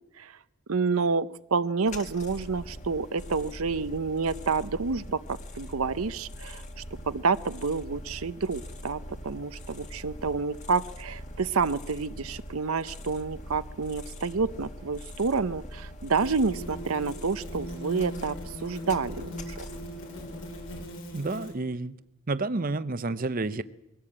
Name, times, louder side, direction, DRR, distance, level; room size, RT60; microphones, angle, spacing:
voice 1, 0.7-5.2 5.5-6.6 7.1-18.4 18.6-19.6, right 4 dB, 75° right, 13 dB, 0.7 m, -29 dB
sound 1, 1.8-20.8, left 1 dB, 35° left, 1.9 m, -42 dB
sound 2, 14.5-14.6 16.1-21.5, equal, 70° left, 6.3 m, -41 dB
voice 2, 21.1-21.9 22.3-23.6, right 3 dB, 40° right, 13 dB, 0.7 m, -30 dB
22.5 x 17.0 x 8.7 m, 0.90 s
head